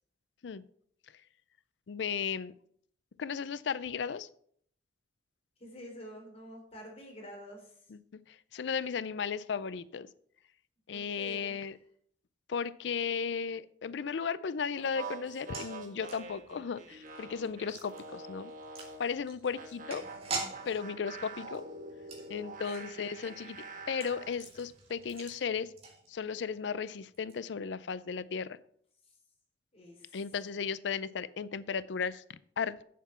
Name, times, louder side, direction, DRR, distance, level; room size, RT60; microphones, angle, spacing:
voice 1, 1.9-2.5 3.2-4.3 7.9-8.0 8.3-10.1 10.9-11.7 12.5-18.5 19.0-20.0 20.7-21.7 22.3-25.7 26.1-28.6 30.1-32.8, left 6 dB, 90° left, 17 dB, 0.4 m, -35 dB
voice 2, 5.6-7.8 10.9-11.7 22.8-23.3 29.7-30.2, equal, 35° left, 1 dB, 3.3 m, -48 dB
sound 1, 14.8-19.1 19.5-24.4, right 3 dB, 50° right, 1.7 m, -46 dB
sound 2, 15.3-26.5 26.8-26.9 27.1-27.3, right 3 dB, 35° right, 2.5 m, -45 dB
8.1 x 7.3 x 5.8 m, 0.62 s
head